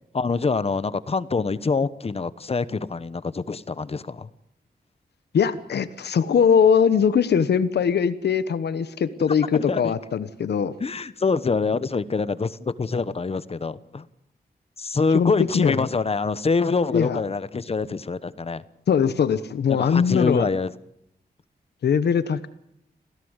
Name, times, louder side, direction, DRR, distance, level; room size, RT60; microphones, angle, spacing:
voice 1, 0.1-4.3 9.5-9.9 10.8-14.1 14.8-18.6 19.7-20.7, left 4 dB, 35° left, 16 dB, 1.1 m, -25 dB
voice 2, 5.3-10.7 15.1-15.9 16.9-17.2 18.9-20.5 21.8-22.5, left 7 dB, 85° left, 13 dB, 1.2 m, -21 dB
27.5 x 17.0 x 8.1 m, 0.78 s
wide cardioid pair, 115°, 17 cm